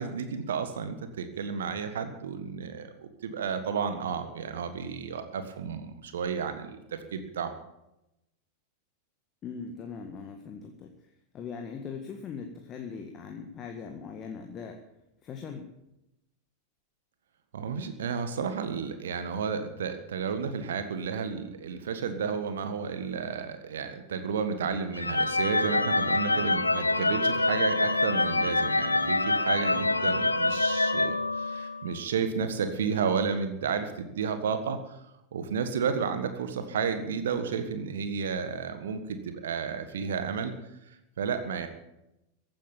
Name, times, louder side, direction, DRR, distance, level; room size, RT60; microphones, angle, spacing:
voice 1, 0.0-6.8 7.1-7.5 17.5-35.0 35.3-40.5 41.2-41.7, right 6 dB, 60° right, 9 dB, 1.6 m, -32 dB
voice 2, 9.4-14.8 15.2-15.7, left 6 dB, 30° left, 4 dB, 1.8 m, -40 dB
sound 1, 25.0-32.0, left 2 dB, 80° left, 0.6 m, -26 dB
15.5 x 9.6 x 8.9 m, 0.89 s
figure-of-eight pair, 90°, 0 cm